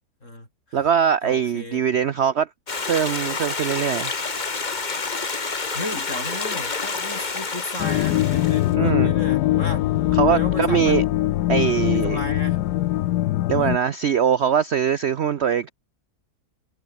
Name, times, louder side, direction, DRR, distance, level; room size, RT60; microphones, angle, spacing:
voice 1, 0.2-0.8 1.2-1.8 5.7-9.9 10.3-11.2 11.6-12.6 13.6-13.8, left 1 dB, 45° left, 8.4 m, -34 dB
voice 2, 0.7-2.5 2.8-4.1 8.8-9.1 10.1-11.0 11.5-12.2 13.5-15.7, right 8 dB, 55° right, 0.8 m, -22 dB
Stream, 2.7-8.7, left 4 dB, 30° left, 1.5 m, -29 dB
sound 1, 7.8-13.8, left 15 dB, 75° left, 1.1 m, -22 dB
omnidirectional pair, 1.8 m